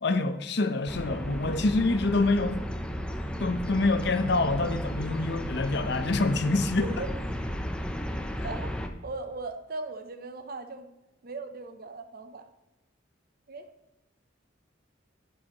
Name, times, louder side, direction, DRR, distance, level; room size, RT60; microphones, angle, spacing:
voice 1, 0.0-2.6 3.4-7.0, left 2 dB, 60° left, 0.8 m, -26 dB
sound 1, 0.9-8.9, equal, 5° left, 0.6 m, -34 dB
voice 2, 6.6-7.1 8.4-8.7 9.0-10.9 11.2-12.5 13.5-13.7, right 3 dB, 50° right, 0.8 m, -38 dB
11.0 x 8.6 x 3.0 m
head